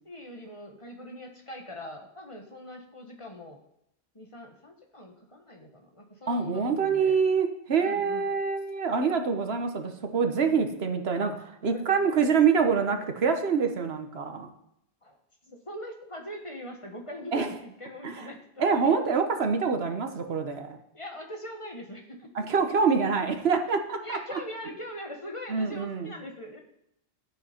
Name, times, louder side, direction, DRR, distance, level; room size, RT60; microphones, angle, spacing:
voice 1, 0.0-3.6 4.1-7.2 7.8-8.3 10.4-10.6 11.7-12.2 15.0-15.2 15.5-18.6 20.9-22.3 24.0-26.6, equal, 30° left, 2 dB, 1.3 m, -42 dB
voice 2, 6.3-14.5 17.3-17.5 18.0-18.3 18.6-20.8 22.3-24.2 25.5-26.1, right 5 dB, 70° right, 6 dB, 1.3 m, -26 dB
13.0 x 8.2 x 4.4 m, 0.79 s
omnidirectional pair, 1.1 m